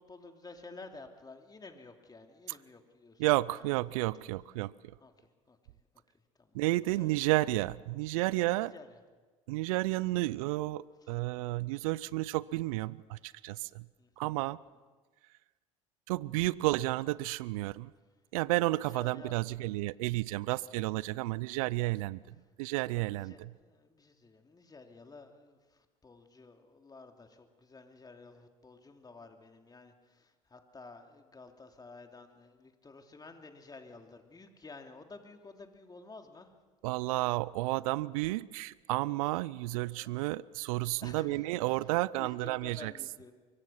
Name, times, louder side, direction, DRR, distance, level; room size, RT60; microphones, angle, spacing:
voice 1, 0.0-3.2 3.5-3.6 5.0-5.9 6.4-6.6 7.0-7.2 8.6-9.0 11.0-11.1 14.0-14.3 18.7-19.4 22.9-36.5 39.8-40.2 41.0-41.9 42.2-43.3, left 3 dB, 20° left, 5 dB, 3.0 m, -52 dB
voice 2, 3.2-4.7 6.5-8.7 9.5-13.8 14.2-14.6 16.1-17.9 18.3-23.5 36.8-42.9, right 19 dB, 70° right, 21 dB, 0.6 m, -31 dB
24.0 x 23.5 x 5.8 m, 1.4 s
hypercardioid pair, 65°, 19 cm